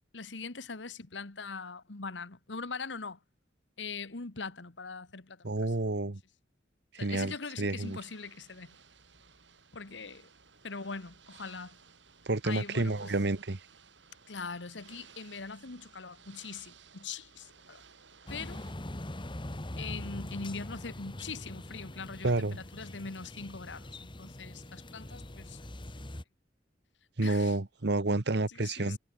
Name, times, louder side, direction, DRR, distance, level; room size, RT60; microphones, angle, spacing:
voice 1, 0.1-3.2 3.8-5.7 7.0-8.7 9.7-10.3 10.6-11.8 12.4-13.1 14.3-17.8 18.3-18.6 19.8-23.9 24.2-25.6 27.2-27.6 28.5-29.0, left 4 dB, 90° left, 1.5 m, -42 dB
voice 2, 5.4-6.2 6.9-8.0 12.2-13.6 22.2-22.6 27.2-29.0, right 2 dB, 70° right, 1.2 m, -30 dB
Ocean / Boat Water vehicle, 7.8-18.7, right 6 dB, 90° right, 7.7 m, -58 dB
sound 1, 18.3-26.2, left 1 dB, 30° left, 1.6 m, -43 dB
head